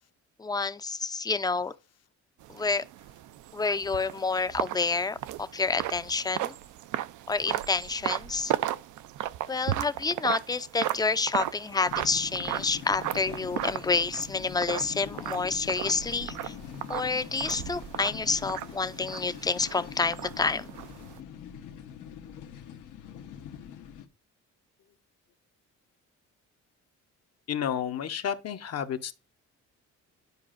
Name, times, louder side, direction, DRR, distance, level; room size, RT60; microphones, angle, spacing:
voice 1, 0.4-1.7 2.5-2.8 3.5-6.5 7.3-8.5 9.5-16.5 16.9-20.8, left 4 dB, 15° left, 0.4 m, -29 dB
sound 1, 2.4-21.2, right 13 dB, 75° right, 0.5 m, -36 dB
sound 2, 11.9-24.1, left 8 dB, 80° left, 1.0 m, -43 dB
voice 2, 27.5-29.1, left 8 dB, 55° left, 0.9 m, -31 dB
10.5 x 4.8 x 2.5 m
cardioid pair, 90°, 30 cm